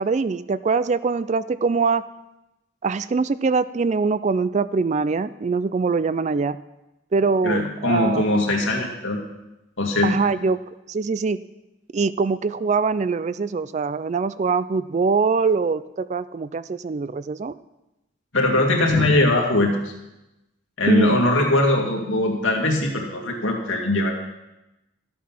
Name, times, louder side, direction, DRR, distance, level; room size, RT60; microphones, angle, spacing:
voice 1, 0.0-2.0 2.8-6.6 7.1-8.3 10.0-10.6 10.9-11.4 11.9-17.6 20.9-21.2, right 4 dB, 35° right, 15 dB, 0.3 m, -23 dB
voice 2, 7.4-9.2 9.8-10.1 18.3-19.9 20.8-24.1, left 2 dB, 80° left, 0 dB, 2.4 m, -21 dB
12.5 x 8.4 x 5.8 m, 0.97 s
head